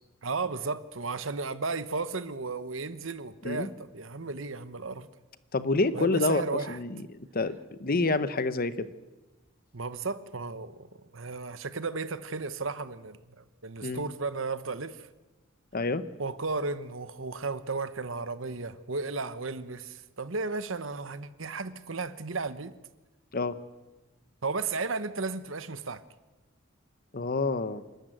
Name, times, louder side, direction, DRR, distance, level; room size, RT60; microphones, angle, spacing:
voice 1, 0.2-5.1 5.9-6.8 9.7-15.1 16.2-22.8 24.4-26.0, right 4 dB, 65° right, 1.1 m, -34 dB
voice 2, 5.5-6.4 6.7-7.0 7.3-8.9 13.8-14.0 15.7-16.0 23.3-23.6 27.1-27.8, left 3 dB, 45° left, 0.9 m, -27 dB
28.0 x 13.0 x 9.1 m
head